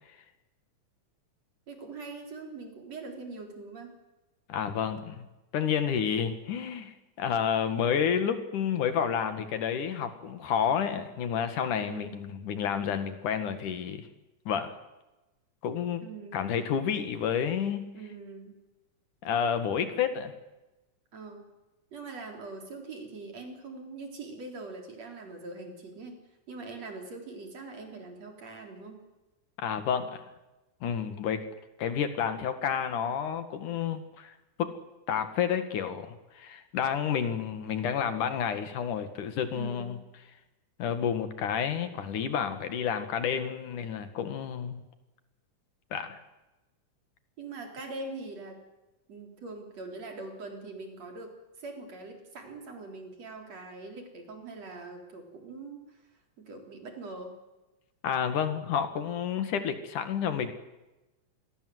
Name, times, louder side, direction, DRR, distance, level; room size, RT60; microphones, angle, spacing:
voice 1, 1.7-3.9 11.8-12.2 16.0-16.4 17.9-18.6 21.1-21.4 21.9-26.2 26.5-29.0 39.5-40.0 47.4-48.6 49.1-51.3 51.6-57.4, right 3 dB, 55° right, 3 dB, 5.1 m, -42 dB
voice 2, 4.5-5.3 5.5-14.1 14.5-14.8 15.6-16.0 16.3-17.9 19.2-20.3 29.6-30.2 30.8-31.4 31.8-34.7 35.1-40.0 40.8-44.9 45.9-46.2 58.0-60.5, left 8 dB, 75° left, 9 dB, 3.4 m, -30 dB
27.5 x 21.0 x 8.0 m, 1.0 s
omnidirectional pair, 3.6 m